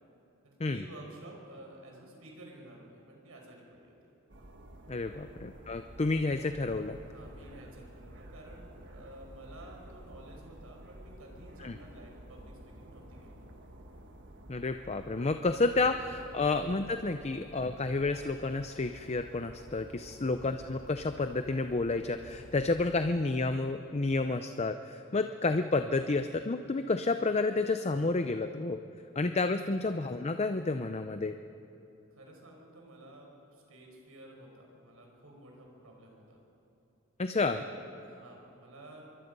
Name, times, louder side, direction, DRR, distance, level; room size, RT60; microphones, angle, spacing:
voice 1, 0.4-3.9 4.9-5.2 7.0-13.4 20.0-20.3 25.0-25.1 29.6-29.8 32.1-36.4 37.5-39.2, right 1 dB, 80° right, 0 dB, 5.3 m, -52 dB
sound 1, 4.3-23.1, right 1 dB, 60° right, 1.7 m, -51 dB
voice 2, 4.9-7.0 11.6-11.8 14.5-28.8 29.2-31.4 37.2-37.6, left 3 dB, 30° left, 8 dB, 0.6 m, -30 dB
25.5 x 23.0 x 5.4 m, 2.9 s
head